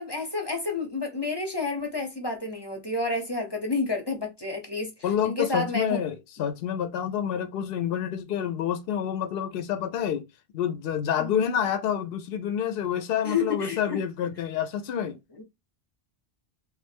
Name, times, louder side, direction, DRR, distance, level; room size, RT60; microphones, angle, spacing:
voice 1, 0.0-4.9 5.2-6.0 11.2-11.4 13.2-14.0 15.3-15.4, left 3 dB, 25° left, 0.7 m, -30 dB
voice 2, 5.0-10.3 10.5-15.2, left 9 dB, 70° left, 0.7 m, -28 dB
3.1 x 2.3 x 3.3 m
omnidirectional pair, 1.1 m